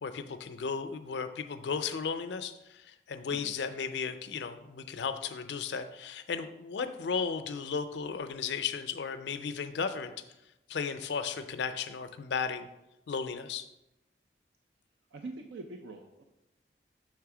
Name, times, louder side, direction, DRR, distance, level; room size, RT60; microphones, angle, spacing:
voice 1, 0.0-10.1 10.7-12.7 13.1-13.6, left 6 dB, 85° left, 10 dB, 0.4 m, -35 dB
voice 2, 15.1-16.2, right 3 dB, 85° right, 4 dB, 0.5 m, -44 dB
6.5 x 3.3 x 4.8 m, 0.94 s
head